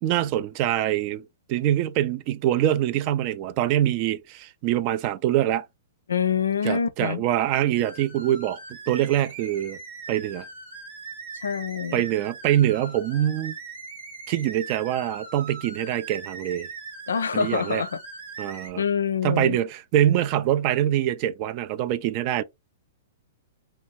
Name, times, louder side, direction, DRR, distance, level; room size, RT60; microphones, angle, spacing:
voice 1, 0.0-1.2 1.5-5.7 6.6-8.6 8.9-9.8 10.1-10.5 11.9-13.6 14.3-16.7 17.3-17.8 18.4-18.8 19.2-22.4, right 12 dB, 40° right, 0.3 m, -24 dB
voice 2, 6.1-7.2 11.4-12.0 17.1-18.0 18.8-19.6, left 7 dB, 80° left, 0.4 m, -26 dB
sound 1, 7.8-18.7, right 4 dB, 60° right, 1.2 m, -40 dB
2.7 x 2.2 x 2.9 m
hypercardioid pair, 115°, 0 cm